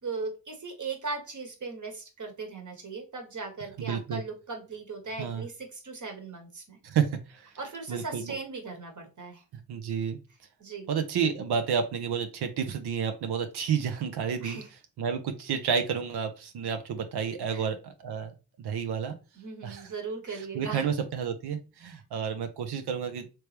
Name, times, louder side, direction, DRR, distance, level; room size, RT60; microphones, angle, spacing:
voice 1, 0.0-6.8 7.6-9.4 10.6-10.9 14.4-14.7 17.5-17.6 19.3-20.8, right 4 dB, 50° right, 3 dB, 1.3 m, -38 dB
voice 2, 3.8-4.2 5.2-5.4 6.8-7.5 7.9-8.4 9.7-10.2 10.9-14.6 15.0-19.2 19.6-19.9 20.5-23.3, right 7 dB, 85° right, 7 dB, 0.6 m, -30 dB
3.2 x 3.0 x 3.2 m, 0.30 s
cardioid pair, 45°, 38 cm